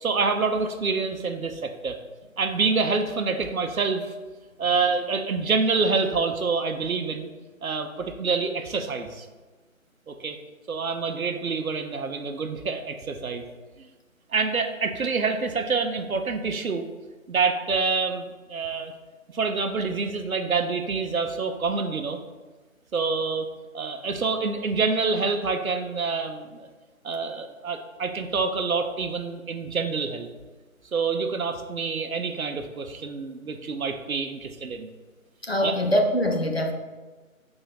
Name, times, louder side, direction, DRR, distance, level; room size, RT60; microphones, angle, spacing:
voice 1, 0.0-2.0 2.4-4.1 4.6-7.3 7.6-9.3 10.1-10.4 10.7-13.5 13.8-13.9 14.3-16.8 17.3-18.9 19.3-22.2 22.9-23.5 23.7-26.7 27.0-30.3 30.9-34.9 35.6-35.8, right 4 dB, 80° right, 7 dB, 0.7 m, -27 dB
voice 2, 35.5-36.7, equal, 50° left, 3 dB, 0.4 m, -23 dB
4.0 x 3.4 x 3.9 m, 1.3 s
figure-of-eight pair, 160°, 42 cm